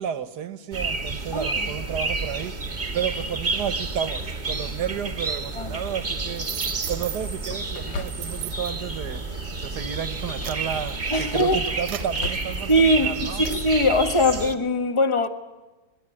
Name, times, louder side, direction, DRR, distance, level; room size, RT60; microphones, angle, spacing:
voice 1, 0.0-2.5 2.9-6.5 6.9-9.2 9.6-13.4, right 9 dB, 60° right, 1.5 m, -32 dB
sound 1, 0.7-14.5, right 3 dB, 25° right, 1.5 m, -30 dB
voice 2, 1.3-1.7 5.5-5.8 11.1-11.6 12.7-15.3, left 1 dB, 20° left, 1.1 m, -21 dB
sound 2, 6.1-6.6 7.5-8.7 9.1-9.4 10.1-11.1 11.5-12.6, left 4 dB, 75° left, 1.9 m, -39 dB
sound 3, 6.3-7.5 8.1-8.8 9.5-9.7 10.1-13.0 13.4-13.7, right 11 dB, 80° right, 1.8 m, -37 dB
26.0 x 20.0 x 9.9 m
omnidirectional pair, 2.1 m